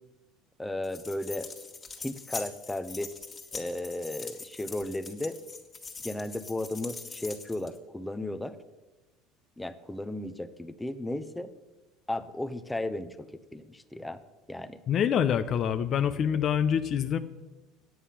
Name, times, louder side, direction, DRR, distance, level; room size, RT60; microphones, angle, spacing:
voice 1, 0.6-1.5 2.0-3.1 3.5-5.4 6.0-8.6 9.6-11.5 12.1-14.2 14.5-14.8, left 1 dB, 10° left, 11 dB, 0.7 m, -35 dB
sound 1, 0.8-7.8, left 4 dB, 25° left, 1.9 m, -43 dB
voice 2, 14.9-17.2, left 8 dB, 50° left, 11 dB, 0.6 m, -26 dB
9.4 x 8.2 x 5.7 m, 1.1 s
hypercardioid pair, 75°, 0 cm